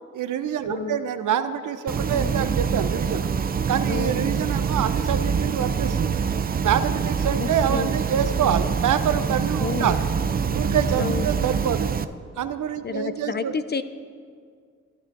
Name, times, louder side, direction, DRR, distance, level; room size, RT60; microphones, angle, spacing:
voice 1, 0.1-3.3 3.7-6.2 6.6-10.1 10.5-11.9 12.4-13.5, right 8 dB, 65° right, 11 dB, 0.6 m, -26 dB
sound 1, 1.9-12.0, right 6 dB, 30° right, 0.4 m, -25 dB
sound 2, 1.9-9.0, right 2 dB, 90° right, 1.8 m, -42 dB
voice 2, 3.9-4.3 7.4-7.9 9.6-9.9 11.0-11.3 12.8-13.8, left 5 dB, 30° left, 12 dB, 0.5 m, -30 dB
sound 3, 5.1-11.5, left 2 dB, 65° left, 2.1 m, -40 dB
13.0 x 11.0 x 2.6 m, 2.1 s
supercardioid pair, 45°, 33 cm